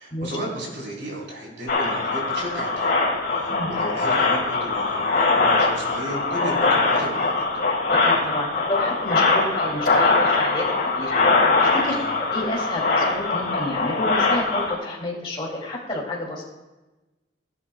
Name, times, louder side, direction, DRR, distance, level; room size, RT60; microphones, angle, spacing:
voice 1, 0.0-7.4 11.8-12.1, right 1 dB, 65° right, -3 dB, 4.0 m, -34 dB
sound 1, 1.7-14.7, left 3 dB, 50° left, 3.4 m, -22 dB
voice 2, 8.0-10.6 10.9-11.2 11.6-16.4, left 1 dB, 25° left, -3 dB, 2.6 m, -30 dB
16.5 x 11.5 x 2.3 m, 1.1 s
head